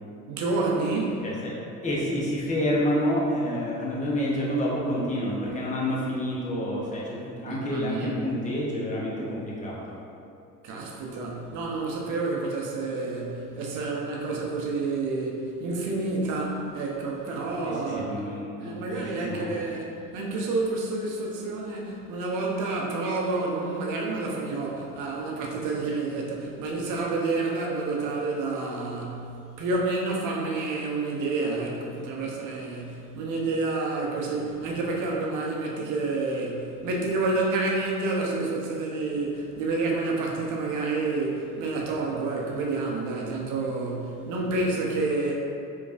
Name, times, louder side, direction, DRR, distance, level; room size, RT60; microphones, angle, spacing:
voice 1, 0.3-1.2 7.4-8.3 10.6-18.2 18.6-29.3 29.6-45.3, right 3 dB, 45° right, -2 dB, 0.8 m, -29 dB
voice 2, 1.8-10.0 17.6-19.6, equal, 15° left, -5 dB, 0.9 m, -28 dB
4.8 x 3.0 x 2.5 m, 2.6 s
figure-of-eight pair, 60°, 44 cm